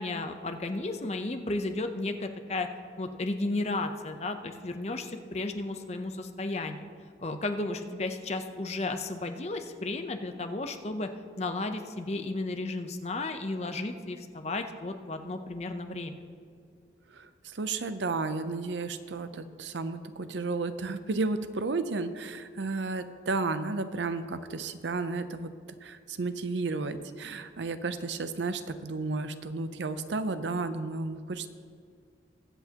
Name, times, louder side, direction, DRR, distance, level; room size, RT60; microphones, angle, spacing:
voice 1, 0.0-2.7 3.0-6.9 7.2-11.1 11.4-16.2, left 2 dB, 35° left, 6 dB, 0.7 m, -33 dB
voice 2, 17.1-25.5 25.8-31.5, right 3 dB, 80° right, 11 dB, 0.6 m, -33 dB
21.0 x 8.1 x 2.9 m, 2.2 s
head